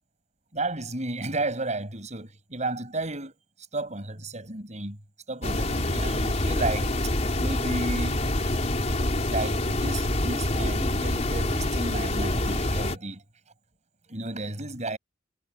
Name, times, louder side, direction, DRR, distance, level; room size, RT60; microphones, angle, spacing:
voice 1, 0.5-3.3 3.7-5.0 5.3-7.1 7.4-8.2 9.3-13.2 14.1-15.0, right 2 dB, 40° right, 6.7 m, -33 dB
sound 1, 5.4-13.0, left 1 dB, 40° left, 3.9 m, -26 dB
head